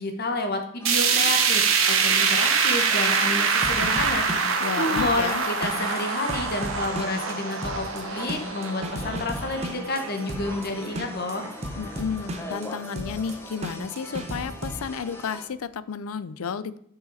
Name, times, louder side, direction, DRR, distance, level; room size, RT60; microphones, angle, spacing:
voice 1, 0.0-11.4, left 2 dB, 45° left, 5 dB, 1.1 m, -30 dB
sound 1, 0.8-15.5, left 1 dB, 10° left, 0.9 m, -42 dB
sound 2, 0.8-11.0 11.4-11.5 11.9-12.0 12.8-12.9, right 5 dB, 70° right, 1.1 m, -25 dB
sound 3, 3.5-14.8, right 1 dB, 30° right, 0.8 m, -35 dB
voice 2, 4.6-5.4 11.8-16.8, left 6 dB, 85° left, 16 dB, 0.5 m, -32 dB
6.3 x 6.0 x 4.0 m, 0.68 s
head